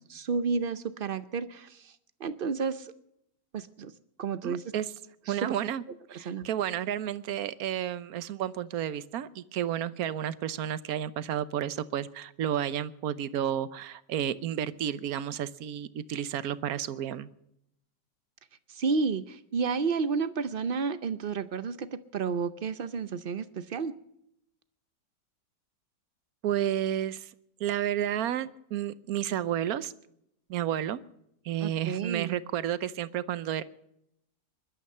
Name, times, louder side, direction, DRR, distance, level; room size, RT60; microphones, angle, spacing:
voice 1, 0.1-1.9 2.2-2.9 3.5-3.9 4.2-4.6 5.3-5.5 6.1-6.5 18.7-21.9 22.1-23.9 31.6-32.3, right 5 dB, 80° right, 13 dB, 0.4 m, -31 dB
voice 2, 4.4-4.9 5.3-5.8 6.1-17.3 26.4-27.3 27.6-29.9 30.5-31.0 31.4-33.6, right 10 dB, 65° right, 15 dB, 1.2 m, -31 dB
21.0 x 12.0 x 5.6 m, 0.77 s
omnidirectional pair, 1.9 m